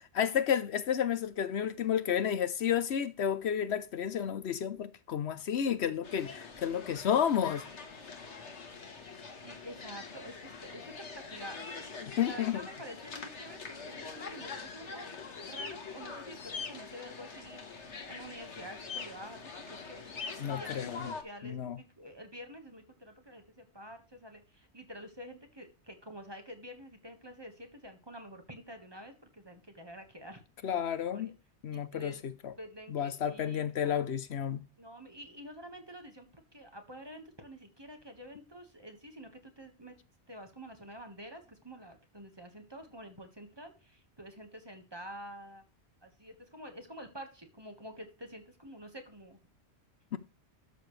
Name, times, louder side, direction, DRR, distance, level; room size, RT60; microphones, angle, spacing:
voice 1, 0.0-7.7 12.0-12.6 20.4-21.1 21.4-21.8 30.6-31.3 31.6-32.5 32.9-34.6 50.1-50.2, left 9 dB, 70° left, 1.0 m, -31 dB
sound 1, 6.0-21.2, left 4 dB, 85° left, 1.8 m, -45 dB
voice 2, 9.4-11.7 12.2-15.1 15.4-30.8 31.1-31.3 31.7-32.2 32.6-34.1 34.8-39.9 40.3-45.6 46.0-49.4, equal, 20° right, 1.5 m, -48 dB
sound 2, 15.3-15.7 16.3-16.7 18.8-19.1 20.1-20.3, left 5 dB, 45° left, 1.2 m, -40 dB
12.5 x 6.9 x 3.2 m
omnidirectional pair, 1.1 m